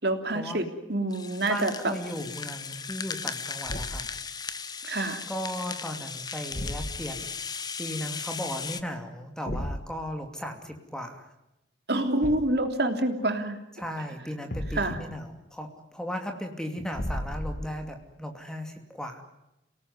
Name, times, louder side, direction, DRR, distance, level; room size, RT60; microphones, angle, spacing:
voice 1, 0.0-1.9 4.8-5.2 11.9-13.6 14.7-15.0, right 1 dB, 55° right, 6 dB, 3.2 m, -27 dB
Rattle (instrument), 1.1-8.8, left 5 dB, 20° left, 1.0 m, -37 dB
voice 2, 1.4-4.1 5.3-11.3 13.8-19.2, equal, 5° left, 4 dB, 2.6 m, -36 dB
Thump thud, 3.6-4.2 6.5-7.2 9.5-9.9 12.2-12.7 14.5-15.1 16.9-17.9, equal, 45° left, 1.8 m, -34 dB
29.5 x 18.5 x 9.7 m, 0.93 s
head